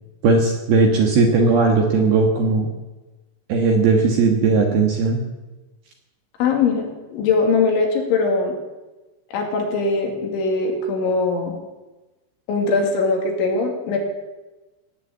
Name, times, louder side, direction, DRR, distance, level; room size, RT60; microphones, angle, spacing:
voice 1, 0.2-2.7 3.5-5.2, right 4 dB, 60° right, 1 dB, 3.0 m, -17 dB
voice 2, 6.4-8.6 9.3-11.5 12.5-14.0, left 4 dB, 70° left, 2 dB, 4.7 m, -21 dB
18.5 x 9.5 x 8.1 m, 1.1 s
omnidirectional pair, 5.8 m